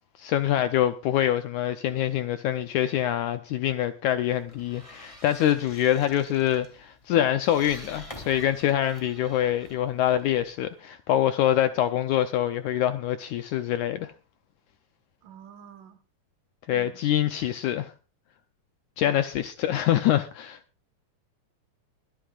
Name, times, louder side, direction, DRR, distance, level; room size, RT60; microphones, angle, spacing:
voice 1, 0.2-14.1 16.7-17.9 19.0-20.6, left 11 dB, 75° left, 1.8 m, -25 dB
sound 1, 4.3-10.8, left 1 dB, 10° left, 2.4 m, -48 dB
voice 2, 15.2-16.0 16.7-17.0 19.0-19.2, right 8 dB, 70° right, 3.0 m, -48 dB
23.0 x 11.0 x 2.4 m
omnidirectional pair, 4.1 m